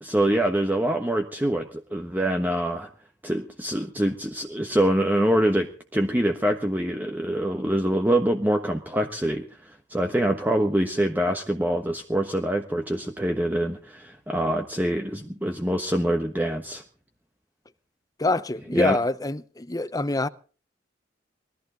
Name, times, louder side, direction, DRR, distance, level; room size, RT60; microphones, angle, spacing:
voice 1, 0.0-2.9 3.2-16.8 18.7-19.0, right 1 dB, 10° right, 1.2 m, -25 dB
voice 2, 18.2-20.3, left 2 dB, 20° left, 0.7 m, -25 dB
21.0 x 14.0 x 4.0 m
head